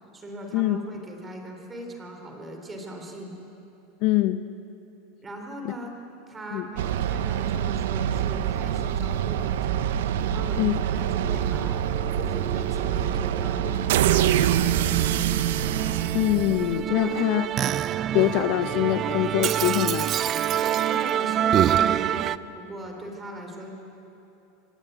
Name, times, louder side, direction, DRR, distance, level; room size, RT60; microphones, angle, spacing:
voice 1, 0.1-3.4 5.2-6.0 6.3-9.8 10.2-11.9 12.2-15.4 16.9-17.4 20.9-23.7, right 1 dB, 15° right, 3 dB, 3.7 m, -39 dB
voice 2, 4.0-4.4 5.6-5.7 6.5-6.7 10.6-10.7 16.1-17.5 18.1-20.1, left 15 dB, 50° left, 11 dB, 0.9 m, -23 dB
sound 1, 6.8-17.0, right 10 dB, 85° right, 1.0 m, -25 dB
Musical instrument, 11.2-22.4, right 10 dB, 30° right, 0.5 m, -27 dB
27.0 x 18.5 x 9.3 m, 2.9 s
supercardioid pair, 155°, 0 cm